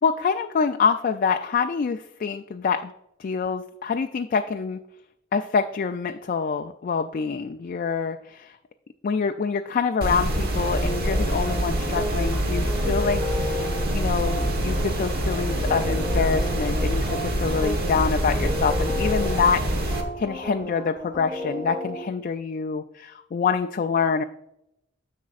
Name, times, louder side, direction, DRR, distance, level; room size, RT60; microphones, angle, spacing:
voice 1, 0.0-2.9 3.2-4.8 5.3-8.6 9.0-24.2, left 5 dB, 45° left, 7 dB, 0.3 m, -26 dB
sound 1, 10.0-20.0, right 1 dB, 50° right, 1.2 m, -25 dB
sound 2, 10.7-22.0, left 1 dB, 20° right, 1.9 m, -33 dB
10.0 x 7.3 x 2.5 m, 0.83 s
head